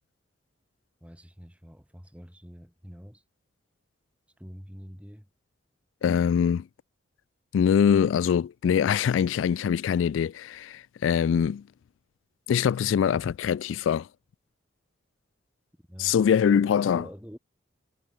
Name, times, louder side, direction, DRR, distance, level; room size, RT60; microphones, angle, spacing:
voice 1, 1.0-3.2 4.4-5.3 15.8-16.2 16.4-17.4, equal, 5° right, 5.2 m, -46 dB
voice 2, 6.0-6.7 7.5-11.6 12.5-14.1 16.0-17.0, left 7 dB, 90° left, 0.3 m, -23 dB
head